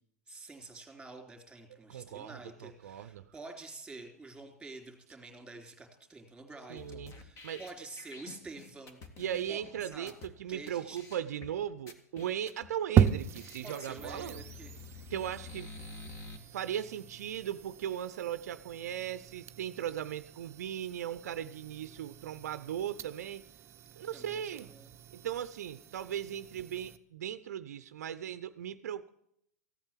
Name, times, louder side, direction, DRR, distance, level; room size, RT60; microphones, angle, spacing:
voice 1, 0.3-10.1 10.5-11.0 13.6-14.7 24.1-24.9, right 3 dB, 5° right, 4 dB, 3.3 m, -48 dB
voice 2, 1.9-3.2 6.7-7.1 7.4-7.6 9.2-14.4 15.1-15.7 16.5-23.4 24.0-24.7 25.1-29.1, right 10 dB, 70° right, 14 dB, 0.6 m, -38 dB
sound 1, 6.8-10.3 10.7-10.8 11.0-11.5 11.9-12.7 13.1-13.2 13.4-16.4, left 4 dB, 30° left, 2.0 m, -49 dB
sound 2, 13.0-27.0, right 8 dB, 30° right, 0.7 m, -36 dB
15.0 x 8.8 x 7.4 m, 0.73 s
hypercardioid pair, 105°, 9 cm